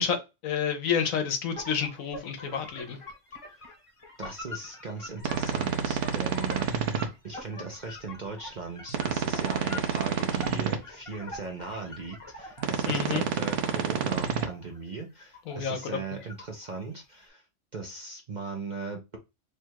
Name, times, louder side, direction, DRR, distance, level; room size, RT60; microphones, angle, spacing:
voice 1, 0.0-3.0 12.8-13.2 15.5-15.8, left 7 dB, 70° left, 1.2 m, -29 dB
sound 1, 1.5-13.0 13.4-15.9 16.2-17.0, left 2 dB, 25° left, 1.1 m, -45 dB
voice 2, 4.2-17.5 17.7-19.2, right 4 dB, 45° right, 0.6 m, -39 dB
sound 2, 5.2-7.1 8.9-10.8 12.6-14.4, right 7 dB, 65° right, 0.9 m, -29 dB
3.2 x 2.4 x 4.4 m
omnidirectional pair, 1.5 m